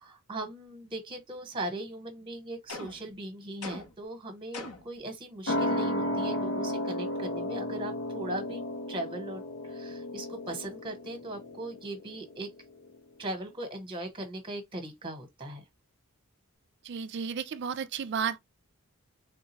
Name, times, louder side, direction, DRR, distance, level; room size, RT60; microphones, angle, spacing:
voice 1, 0.0-8.6 8.9-12.5 13.2-15.6, right 1 dB, 20° right, 1.1 m, -39 dB
sound 1, 2.7-3.1 3.6-4.1 4.5-5.0, left 3 dB, 85° left, 0.9 m, -41 dB
sound 2, 5.5-12.5 12.8-12.9, left 1 dB, 55° left, 0.6 m, -33 dB
voice 2, 16.8-18.4, right 7 dB, 50° right, 0.3 m, -33 dB
3.6 x 2.3 x 3.0 m
head